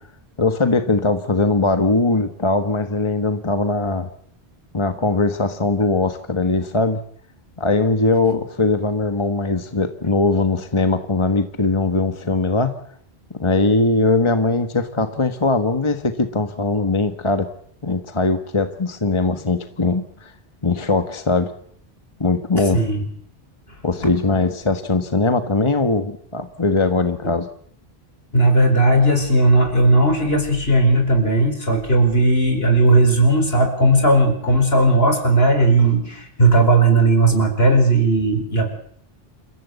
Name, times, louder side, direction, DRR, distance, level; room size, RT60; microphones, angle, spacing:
voice 1, 0.4-4.1 4.7-7.0 7.6-12.7 13.4-17.5 17.8-20.3 20.6-21.5 22.2-22.8 23.8-27.5, left 3 dB, 30° left, 9 dB, 1.4 m, -20 dB
voice 2, 22.7-23.0 28.3-38.7, right 2 dB, 70° left, 6 dB, 5.0 m, -16 dB
29.0 x 15.5 x 8.2 m, 0.65 s
omnidirectional pair, 1.1 m